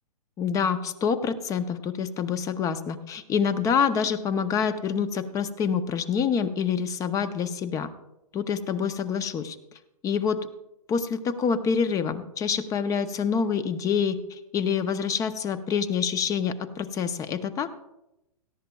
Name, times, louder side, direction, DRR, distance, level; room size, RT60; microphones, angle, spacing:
voice 1, 0.4-7.9 8.3-9.6 10.0-10.4 10.9-17.7, left 6 dB, 15° left, 13 dB, 0.5 m, -26 dB
17.5 x 13.5 x 2.3 m, 0.92 s
hypercardioid pair, 135°, 19 cm